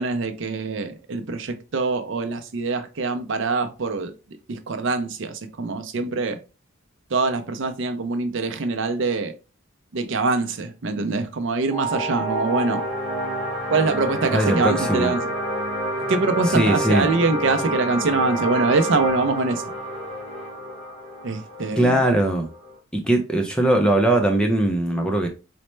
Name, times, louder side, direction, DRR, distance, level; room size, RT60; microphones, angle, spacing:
voice 1, 0.0-4.1 4.5-6.4 7.1-9.3 9.9-12.8 13.7-15.2 16.1-19.6 21.2-22.0, right 3 dB, 60° right, 0.5 m, -24 dB
sound 1, 11.7-22.8, right 1 dB, 30° right, 1.1 m, -28 dB
voice 2, 14.3-15.1 16.5-17.1 21.7-22.5 22.9-25.3, right 1 dB, 5° left, 0.3 m, -20 dB
4.1 x 2.1 x 3.1 m
head